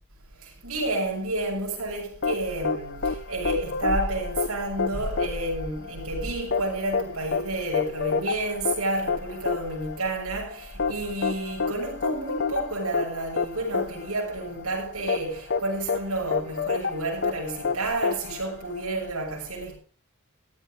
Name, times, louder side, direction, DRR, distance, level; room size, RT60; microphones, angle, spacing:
voice 1, 0.4-19.8, right 2 dB, 85° right, 7.0 m, -30 dB
sound 1, 2.2-19.1, left 5 dB, 50° left, 0.9 m, -29 dB
16.0 x 13.5 x 3.9 m
head